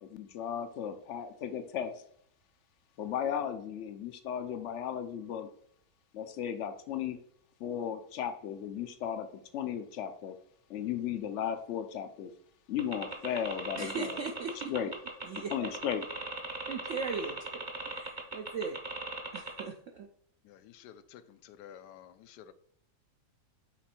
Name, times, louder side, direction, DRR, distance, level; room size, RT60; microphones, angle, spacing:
voice 1, 0.0-1.9 3.0-5.5 6.1-7.2 7.6-9.3 9.5-10.4 10.7-12.3 12.7-14.2 14.7-14.9 15.5-16.0, left 9 dB, 70° left, 9 dB, 0.7 m, -35 dB
sound 1, 12.8-19.6, right 2 dB, 35° right, 0.8 m, -38 dB
voice 2, 13.8-14.7 15.2-15.7 16.7-17.4 17.8-18.8 19.3-20.1, right 5 dB, 70° right, 4 dB, 0.7 m, -38 dB
voice 3, 20.4-22.5, left 10 dB, 85° left, 11 dB, 1.2 m, -52 dB
6.1 x 4.0 x 4.3 m, 0.67 s
omnidirectional pair, 1.8 m